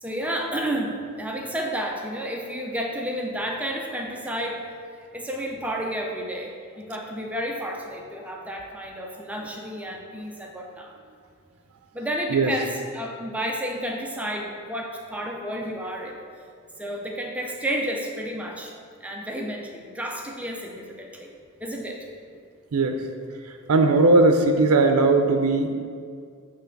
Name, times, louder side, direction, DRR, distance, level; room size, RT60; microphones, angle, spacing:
voice 1, 0.0-4.7 5.1-10.9 11.9-16.2 16.8-21.3 21.6-22.1, equal, 5° right, 0 dB, 0.4 m, -31 dB
voice 2, 23.7-25.7, right 3 dB, 70° right, 5 dB, 0.5 m, -18 dB
6.2 x 3.2 x 5.7 m, 2.1 s
head